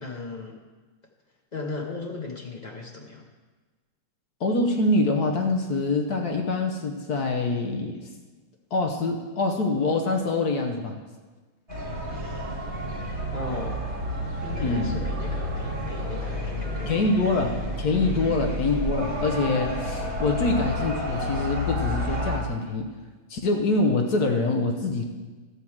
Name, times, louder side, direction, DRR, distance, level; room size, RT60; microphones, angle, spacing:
voice 1, 0.0-0.6 1.5-3.3 13.3-13.9 14.4-17.2 18.2-18.5, left 3 dB, 80° left, 0 dB, 0.4 m, -36 dB
voice 2, 4.4-8.0 8.7-11.0 14.6-14.9 16.9-22.9 23.3-25.1, left 3 dB, 55° left, 3 dB, 1.3 m, -25 dB
sound 1, 11.7-22.4, left 1 dB, 40° right, 3.1 m, -30 dB
13.0 x 4.7 x 7.3 m, 1.3 s
omnidirectional pair, 2.3 m